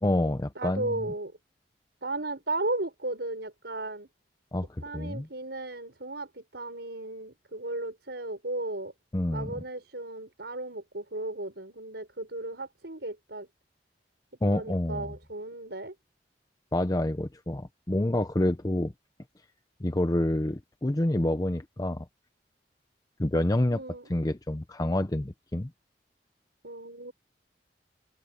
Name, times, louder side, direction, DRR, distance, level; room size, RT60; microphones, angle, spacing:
voice 1, 0.0-1.0 4.5-4.7 4.9-5.3 9.1-9.5 14.4-15.1 16.7-18.9 19.8-22.0 23.2-23.8 24.1-25.7, left 1 dB, 20° left, 0.7 m, -27 dB
voice 2, 0.6-1.3 2.0-4.1 4.8-8.9 9.3-13.5 14.5-15.9 23.7-24.0 26.6-27.1, right 2 dB, 70° right, 5.8 m, -35 dB
open air
head